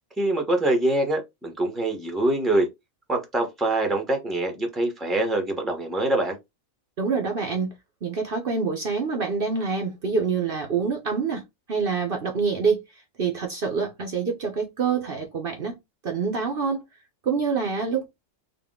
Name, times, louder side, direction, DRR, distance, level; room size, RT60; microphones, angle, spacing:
voice 1, 0.2-2.7 3.1-6.4, right 2 dB, ahead, 0.9 m, -24 dB
voice 2, 7.0-7.7 8.0-12.8 13.2-15.8 16.0-16.8 17.2-18.1, right 5 dB, 50° right, 0.9 m, -26 dB
3.8 x 2.5 x 3.6 m
omnidirectional pair, 1.3 m